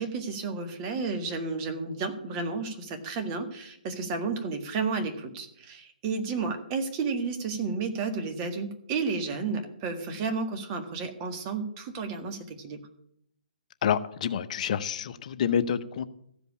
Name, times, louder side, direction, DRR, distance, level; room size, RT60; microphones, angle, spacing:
voice 1, 0.0-12.8, right 4 dB, 30° right, 6 dB, 1.7 m, -32 dB
voice 2, 13.8-16.1, left 8 dB, 45° left, 11 dB, 0.8 m, -28 dB
14.5 x 5.2 x 8.4 m, 0.71 s
hypercardioid pair, 145°, 5 cm